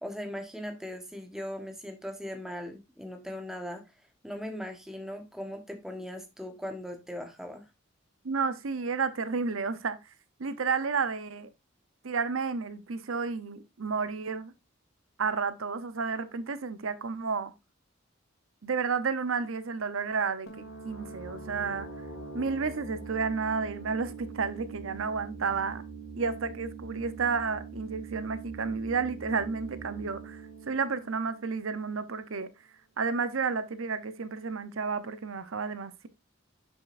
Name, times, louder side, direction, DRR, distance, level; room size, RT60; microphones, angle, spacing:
voice 1, 0.0-3.8 4.2-7.6, left 1 dB, ahead, 1.0 m, -39 dB
voice 2, 8.2-10.0 10.4-11.5 12.0-14.5 15.2-17.5 18.6-21.9 22.3-25.8 26.2-32.5 33.0-36.1, right 5 dB, 90° right, 0.7 m, -31 dB
sound 1, 20.5-32.0, right 4 dB, 80° left, 2.7 m, -43 dB
7.1 x 6.4 x 2.5 m
head